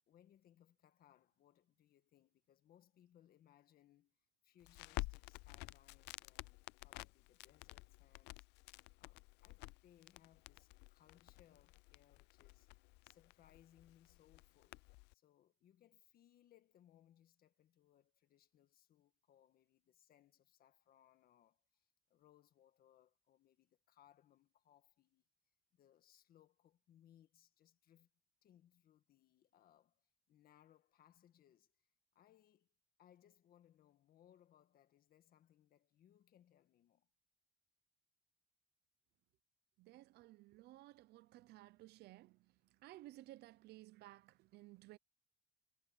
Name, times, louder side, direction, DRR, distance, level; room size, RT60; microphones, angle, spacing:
voice 1, 0.1-12.7 13.0-14.8 15.1-25.2 25.7-28.1 28.4-37.1, left 11 dB, 60° left, 1.8 m, -70 dB
Crackle, 4.6-15.1, left 23 dB, 90° left, 0.4 m, -51 dB
voice 2, 39.8-42.5 42.8-45.0, right 17 dB, 75° right, 0.7 m, -57 dB
cardioid pair, 110°, 17 cm